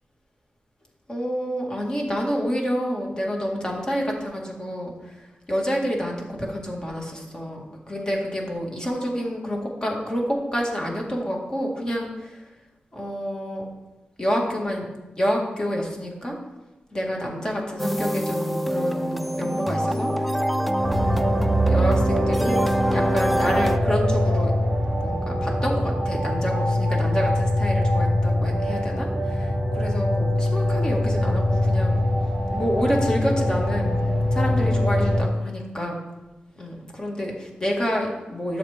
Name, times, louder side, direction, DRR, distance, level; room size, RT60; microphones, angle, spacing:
voice 1, 1.1-12.5 12.9-13.7 14.2-14.9 15.2-16.4 16.9-20.5 20.9-21.3 21.7-22.6 22.9-24.5 25.0-32.0 32.5-34.0 34.3-36.0 36.6-38.6, equal, 20° left, -1 dB, 1.9 m, -28 dB
sound 1, 17.8-23.8, equal, ahead, 0.5 m, -25 dB
sound 2, 20.8-35.2, left 1 dB, 25° right, 2.4 m, -23 dB
11.5 x 7.1 x 3.6 m, 1.0 s
wide cardioid pair, 125°, 3 cm